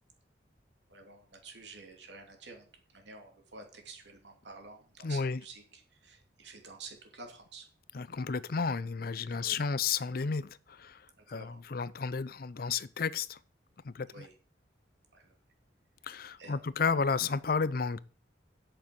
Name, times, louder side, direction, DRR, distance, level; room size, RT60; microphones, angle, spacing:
voice 1, 0.9-7.7 9.3-9.6 11.2-11.6 14.1-14.3 15.1-15.4 16.4-16.7, right 3 dB, 75° right, 2.7 m, -50 dB
voice 2, 5.0-5.4 7.9-13.4 13.8-14.3 16.0-18.0, left 5 dB, 50° left, 0.5 m, -32 dB
8.7 x 6.7 x 7.7 m
head